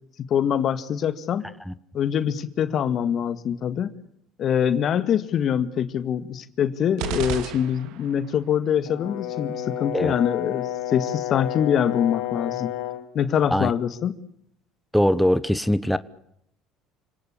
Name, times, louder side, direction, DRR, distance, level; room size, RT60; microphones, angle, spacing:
voice 1, 0.3-1.5 1.9-3.9 4.4-12.7 13.1-14.2, left 8 dB, 50° left, 13 dB, 1.9 m, -24 dB
sound 1, 7.0-8.3, right 9 dB, 70° right, 2.5 m, -32 dB
Brass instrument, 8.9-13.1, left 13 dB, 75° left, 2.3 m, -30 dB
voice 2, 14.9-16.0, equal, ahead, 14 dB, 1.2 m, -21 dB
29.0 x 19.0 x 8.6 m, 0.75 s
hypercardioid pair, 70°, 0 cm